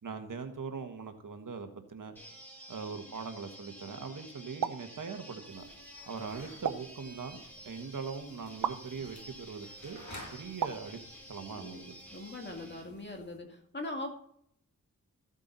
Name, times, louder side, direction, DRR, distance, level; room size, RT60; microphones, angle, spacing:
voice 1, 0.0-2.1 2.7-5.7 6.1-10.0 10.3-11.0 11.3-11.8, right 5 dB, 70° right, 6 dB, 1.5 m, -41 dB
sound 1, 2.2-12.8, equal, 5° left, 4.9 m, -51 dB
sound 2, 4.6-4.9 6.6-7.0 8.6-8.9 10.6-10.9, right 8 dB, 90° right, 0.7 m, -34 dB
sound 3, 5.5-13.4, left 1 dB, 60° left, 5.4 m, -54 dB
voice 2, 12.1-14.1, left 1 dB, 35° left, 2 dB, 2.3 m, -41 dB
14.5 x 8.1 x 4.1 m, 0.69 s
wide cardioid pair, 105°, 33 cm